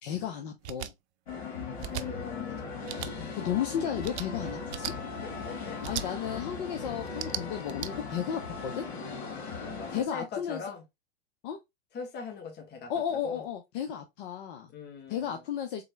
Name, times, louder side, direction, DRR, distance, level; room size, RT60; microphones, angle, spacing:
voice 1, 0.0-0.9 3.3-4.9 5.9-8.9 9.9-10.6 11.4-11.6 12.9-14.7 15.1-15.8, left 9 dB, 55° left, 0.8 m, -34 dB
sound 1, 0.6-0.9 1.8-2.0 2.8-3.1 4.0-4.3 4.7-4.9 5.8-6.1 7.1-7.9, right 12 dB, 80° right, 0.5 m, -36 dB
sound 2, 1.3-10.0, left 5 dB, 75° left, 2.3 m, -38 dB
voice 2, 1.9-3.4 5.2-6.2 9.2-10.8 11.9-13.4 14.7-15.4, left 4 dB, 30° left, 1.8 m, -42 dB
3.9 x 3.2 x 3.1 m
hypercardioid pair, 110°, 33 cm